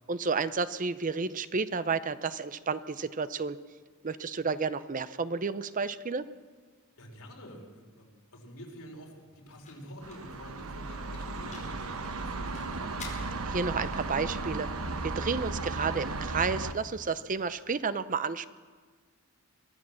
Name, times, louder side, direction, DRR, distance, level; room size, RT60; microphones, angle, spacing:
voice 1, 0.1-3.6 4.0-6.2 13.5-14.7 15.0-18.5, right 4 dB, 35° right, 14 dB, 0.6 m, -31 dB
voice 2, 7.0-13.2, equal, 85° left, 0 dB, 4.7 m, -48 dB
sound 1, 8.2-16.1, left 4 dB, 35° left, 5.0 m, -54 dB
sound 2, 10.0-16.7, right 3 dB, 65° right, 1.1 m, -35 dB
24.0 x 14.5 x 7.5 m, 1.5 s
head